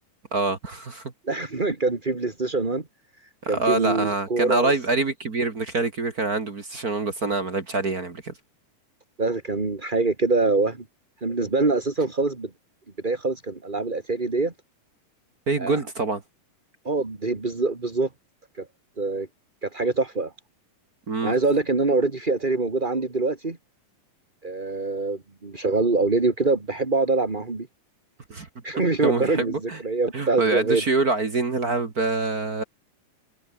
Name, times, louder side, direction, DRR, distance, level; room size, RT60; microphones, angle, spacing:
voice 1, 0.3-1.1 3.4-8.3 15.5-16.2 21.1-21.3 28.3-28.5 29.0-29.8 30.1-32.6, right 3 dB, 35° right, 2.1 m, -25 dB
voice 2, 1.2-2.8 3.2-5.0 9.2-10.8 11.2-12.5 13.0-14.5 15.6-15.8 16.8-18.1 18.5-18.7 19.0-19.3 19.6-20.3 21.2-23.6 24.4-27.7 28.6-30.8, right 3 dB, 15° right, 2.1 m, -24 dB
omnidirectional pair, 3.6 m